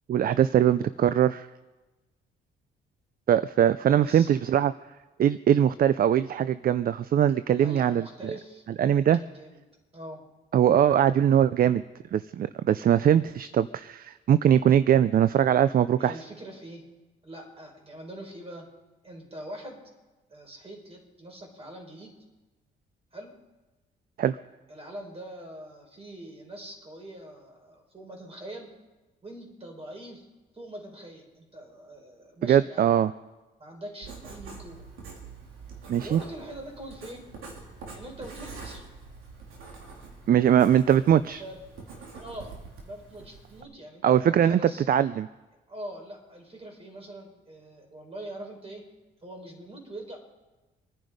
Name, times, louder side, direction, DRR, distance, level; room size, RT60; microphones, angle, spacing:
voice 1, 0.1-1.5 3.3-4.7 5.2-8.1 8.8-9.2 10.5-11.8 12.1-16.1 24.2-24.4 32.5-33.1 35.9-36.2 40.3-41.4 44.0-44.6 44.9-45.3, right 9 dB, 50° right, 15 dB, 0.5 m, -21 dB
voice 2, 7.6-9.6 9.9-10.2 16.0-16.8 17.2-18.7 19.0-19.8 20.3-22.1 23.1-23.3 24.7-28.7 29.2-30.2 30.5-32.9 33.6-34.8 36.0-37.2 37.9-38.9 41.4-41.6 42.1-42.6 42.8-44.9 45.7-48.8 49.2-50.2, right 1 dB, 30° right, 1 dB, 5.2 m, -43 dB
Writing, 34.0-43.6, right 4 dB, 85° right, 3.6 m, -45 dB
25.0 x 10.5 x 5.1 m, 1.1 s
cardioid pair, 90°, 20 cm